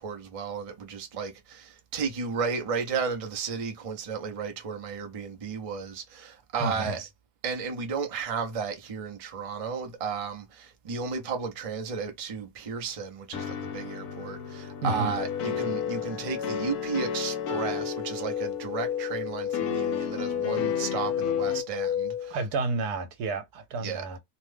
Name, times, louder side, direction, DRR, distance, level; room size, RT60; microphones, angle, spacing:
voice 1, 0.0-7.0 7.4-22.4 23.8-24.0, right 6 dB, 55° right, 0.3 m, -33 dB
voice 2, 6.6-7.1 14.8-15.2 22.3-24.2, right 3 dB, 85° right, 1.3 m, -31 dB
sound 1, 13.3-21.6, left 7 dB, 70° left, 0.9 m, -34 dB
sound 2, 15.2-22.3, left 9 dB, 85° left, 1.2 m, -32 dB
2.8 x 2.1 x 3.2 m
omnidirectional pair, 1.7 m